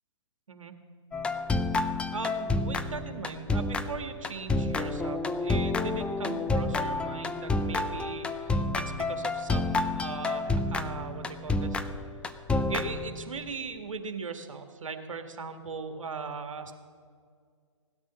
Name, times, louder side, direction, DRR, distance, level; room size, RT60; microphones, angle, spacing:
sound 1, 1.1-13.5, left 2 dB, 5° left, 0.5 m, -29 dB
voice 1, 2.1-11.8 12.7-16.7, right 5 dB, 85° right, 7 dB, 1.9 m, -39 dB
17.5 x 12.5 x 6.2 m, 2.1 s
hypercardioid pair, 140°, 16 cm